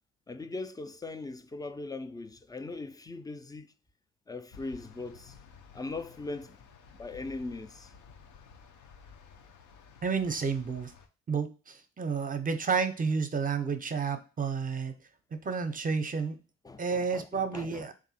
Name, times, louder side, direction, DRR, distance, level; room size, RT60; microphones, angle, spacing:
voice 1, 0.3-3.7 4.3-5.4 5.7-6.6 6.9-7.9 16.6-17.9, left 3 dB, 15° left, 0.3 m, -40 dB
sound 1, 4.5-11.1, left 5 dB, 90° left, 0.7 m, -54 dB
voice 2, 10.0-10.9 11.3-14.9 15.3-16.4 16.8-17.9, right 5 dB, 30° right, 0.6 m, -31 dB
3.5 x 2.6 x 4.1 m
cardioid pair, 90°, 30 cm